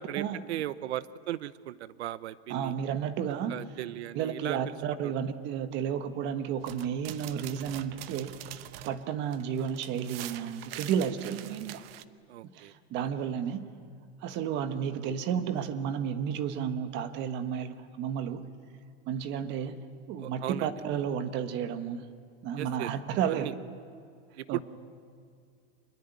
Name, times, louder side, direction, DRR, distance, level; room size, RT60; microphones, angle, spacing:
voice 1, 0.0-2.7 3.5-4.8 5.0-5.1 12.3-12.7 20.2-20.7 22.6-22.9 23.2-23.5 24.4-24.6, right 13 dB, 85° right, 17 dB, 0.9 m, -37 dB
voice 2, 2.5-3.5 4.1-8.4 8.8-11.8 12.4-13.6 14.2-18.4 19.1-19.8 20.1-22.0 22.4-23.5 24.5-24.6, right 8 dB, 35° right, 10 dB, 1.5 m, -32 dB
sound 1, 6.6-12.0, right 13 dB, 65° right, 1.1 m, -44 dB
25.5 x 22.0 x 9.4 m, 2.3 s
supercardioid pair, 160°, 32 cm